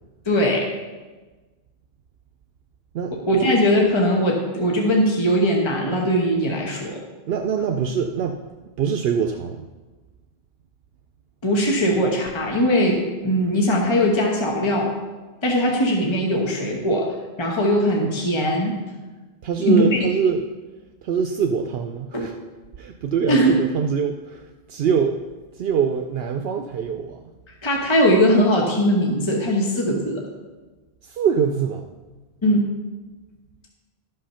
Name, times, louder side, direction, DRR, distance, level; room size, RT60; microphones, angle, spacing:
voice 1, 0.3-0.7 3.3-7.0 11.4-14.9 15.4-17.1 17.4-18.8 19.6-19.8 22.1-22.3 23.3-23.5 27.6-30.2 32.4-32.7, equal, 25° left, -1 dB, 1.2 m, -20 dB
voice 2, 2.9-3.5 7.3-8.4 8.8-9.6 19.4-20.4 21.0-22.3 22.8-25.2 25.5-27.2 31.0-31.8, right 7 dB, 70° right, 5 dB, 0.8 m, -24 dB
12.5 x 5.5 x 5.6 m, 1.3 s
omnidirectional pair, 1.1 m